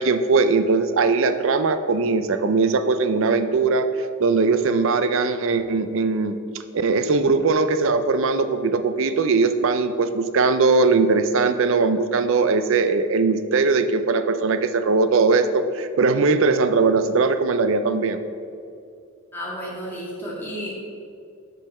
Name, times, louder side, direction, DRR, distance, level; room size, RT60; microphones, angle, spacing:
voice 1, 0.0-3.9 4.2-6.4 6.7-18.2, right 4 dB, 65° right, 10 dB, 0.5 m, -20 dB
voice 2, 19.3-20.8, equal, 10° left, -7 dB, 2.0 m, -32 dB
7.4 x 5.5 x 5.5 m, 2.4 s
head